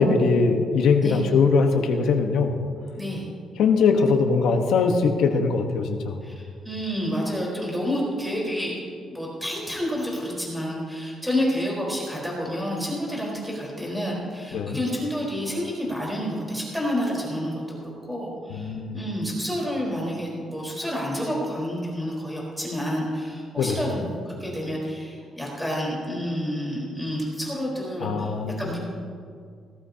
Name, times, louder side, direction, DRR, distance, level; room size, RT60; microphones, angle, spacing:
voice 1, 0.0-2.6 3.6-6.2 14.5-14.8 18.5-19.0 23.6-23.8 28.0-28.6, left 4 dB, 85° left, 3 dB, 1.1 m, -21 dB
voice 2, 6.2-8.7 9.1-28.3 28.6-28.8, equal, ahead, -4 dB, 4.0 m, -29 dB
19.0 x 14.5 x 2.8 m, 2.2 s
cardioid pair, 140°, 0 cm